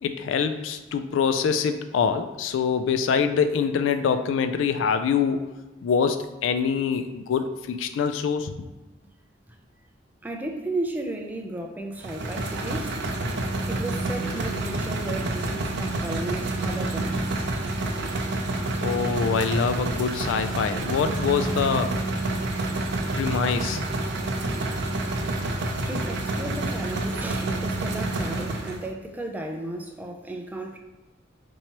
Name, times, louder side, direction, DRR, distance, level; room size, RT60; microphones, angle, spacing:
voice 1, 0.0-5.5 5.8-8.7 18.8-21.9 23.2-23.8, left 6 dB, 80° left, 8 dB, 0.3 m, -25 dB
voice 2, 10.2-13.0 13.7-17.6 24.9-25.0 25.9-30.8, right 1 dB, 10° right, 2 dB, 0.4 m, -34 dB
sound 1, 12.0-28.9, right 2 dB, 65° right, 0.5 m, -28 dB
4.6 x 2.9 x 2.9 m, 1.1 s
head